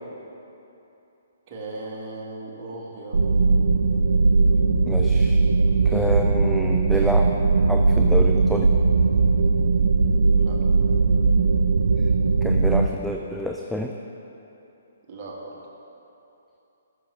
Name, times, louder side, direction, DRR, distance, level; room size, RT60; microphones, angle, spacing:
voice 1, 1.5-3.2 10.4-10.7 15.1-15.6, right 2 dB, 40° right, -3 dB, 1.6 m, -37 dB
sound 1, 3.1-12.9, right 4 dB, 80° right, 0.5 m, -19 dB
voice 2, 4.9-5.5 5.9-7.3 7.7-8.7 12.4-13.9, equal, ahead, 1 dB, 0.4 m, -28 dB
14.0 x 6.1 x 3.2 m, 2.9 s
hypercardioid pair, 140°, 0 cm